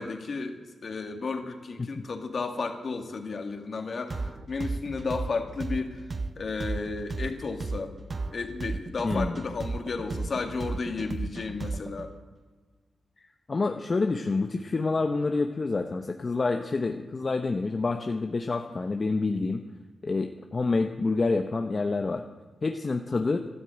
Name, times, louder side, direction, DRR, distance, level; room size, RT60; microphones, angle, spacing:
voice 1, 0.0-8.0 8.3-12.1, left 4 dB, 60° left, 5 dB, 2.3 m, -33 dB
sound 1, 4.1-12.0, right 3 dB, 45° right, 1.0 m, -33 dB
voice 2, 9.0-9.4 13.5-19.6 20.0-22.2 22.6-23.4, left 3 dB, 40° left, 5 dB, 1.0 m, -27 dB
13.0 x 12.5 x 8.7 m, 1.3 s
cardioid pair, 70°, 0 cm